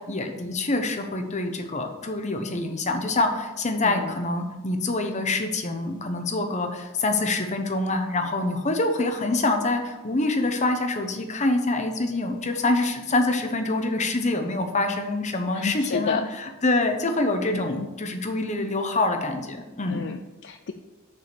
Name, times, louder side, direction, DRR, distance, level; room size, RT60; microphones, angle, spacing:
voice 1, 0.0-20.0, left 2 dB, 35° left, 6 dB, 0.9 m, -26 dB
voice 2, 3.8-4.1 15.5-16.3 17.5-17.9 19.9-20.7, left 5 dB, 55° left, 6 dB, 0.4 m, -30 dB
6.9 x 5.0 x 6.6 m, 1.1 s
head